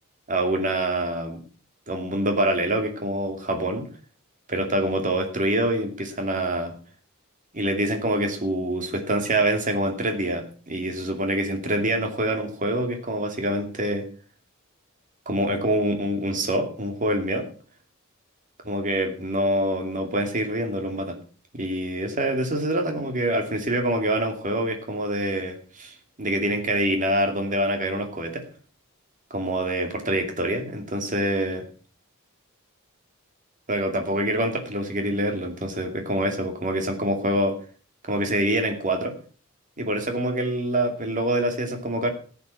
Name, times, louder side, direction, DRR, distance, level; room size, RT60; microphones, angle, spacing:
voice 1, 0.3-1.4 1.9-3.9 4.5-6.7 7.5-14.0 15.3-17.5 18.6-21.2 21.5-28.4 29.3-31.6 33.7-37.6 38.0-39.1 39.8-42.1, right 1 dB, 40° right, 4 dB, 2.7 m, -25 dB
14.5 x 8.6 x 6.0 m, 0.42 s
head